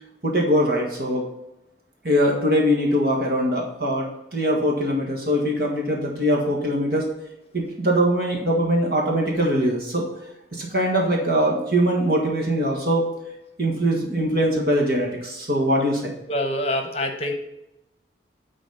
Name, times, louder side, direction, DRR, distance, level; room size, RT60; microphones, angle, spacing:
voice 1, 0.2-1.2 2.0-4.1 4.3-7.1 7.5-10.0 10.5-13.0 13.6-16.1, equal, 55° right, -1 dB, 1.6 m, -22 dB
voice 2, 16.3-17.3, left 1 dB, 35° left, 5 dB, 0.9 m, -25 dB
10.0 x 4.2 x 5.5 m, 0.89 s
head